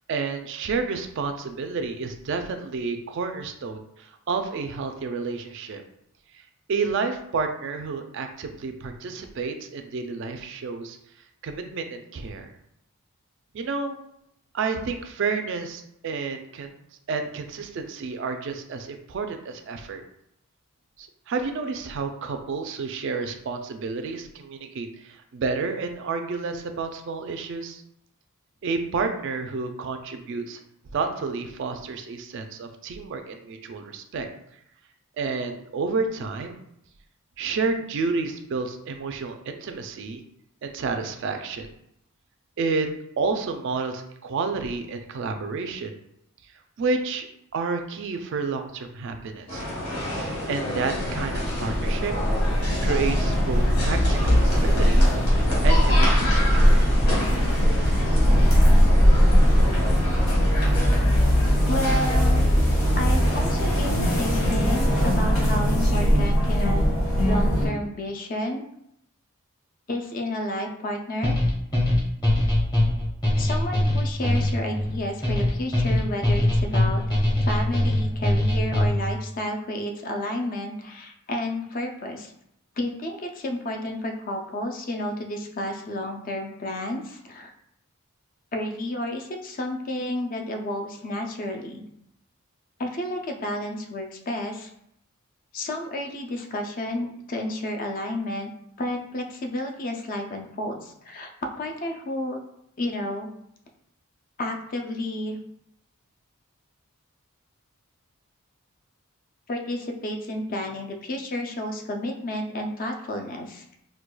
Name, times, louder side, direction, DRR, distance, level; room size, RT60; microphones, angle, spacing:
voice 1, 0.1-5.8 6.7-11.0 11.4-12.5 13.5-14.0 14.5-16.7 17.1-20.0 21.0-27.8 28.6-30.6 30.9-34.3 35.2-36.6 37.4-40.2 40.6-41.7 42.6-42.9 43.2-45.9 46.8-47.3 47.5-49.6 50.5-52.1 52.6-55.1 55.6-57.0, right 4 dB, 55° right, 6 dB, 0.3 m, -30 dB
sound 1, 49.5-65.2, left 1 dB, 80° left, 1.4 m, -30 dB
sound 2, 50.9-67.7, equal, 65° left, 1.3 m, -20 dB
voice 2, 61.7-62.5 63.0-66.8 67.2-68.7 69.9-71.4 73.4-77.0 77.4-82.3 82.8-87.5 88.5-91.9 92.8-94.7 95.5-98.5 98.8-102.4 102.8-103.3 104.4-105.4 109.5-113.6, left 1 dB, 40° left, 4 dB, 0.4 m, -31 dB
sound 3, 71.2-79.1, left 1 dB, 20° left, 0.8 m, -22 dB
4.6 x 2.2 x 2.2 m, 0.76 s
head